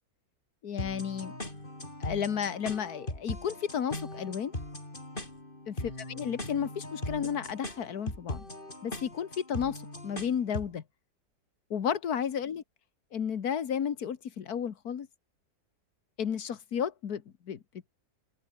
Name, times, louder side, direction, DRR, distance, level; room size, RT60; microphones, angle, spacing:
voice 1, 0.6-1.3 2.0-4.5 5.7-5.8 6.2-8.5 8.8-10.8 11.7-12.6 13.1-15.1 16.2-17.6, left 8 dB, 75° left, 1.9 m, -32 dB
sound 1, 0.8-10.8, left 1 dB, 30° left, 5.5 m, -39 dB
open air
omnidirectional pair, 1.6 m